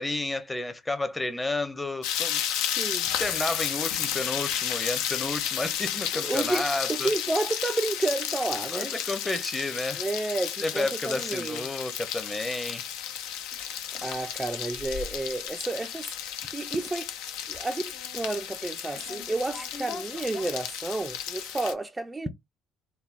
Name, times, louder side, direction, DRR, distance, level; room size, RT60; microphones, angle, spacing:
voice 1, 0.0-2.4 3.2-7.1 8.7-10.0 10.6-12.8, left 2 dB, 15° left, 0.6 m, -31 dB
sound 1, 2.0-21.7, left 10 dB, 85° left, 0.4 m, -33 dB
voice 2, 2.8-3.1 6.1-8.9 9.9-11.6 14.0-17.1 17.5-22.3, right 2 dB, 15° right, 0.3 m, -31 dB
sound 2, 13.0-15.5 15.8-16.3 16.7-17.0 17.3-18.7 18.9-21.2, left 5 dB, 65° left, 0.8 m, -44 dB
3.2 x 2.1 x 2.4 m
supercardioid pair, 80°, 0 cm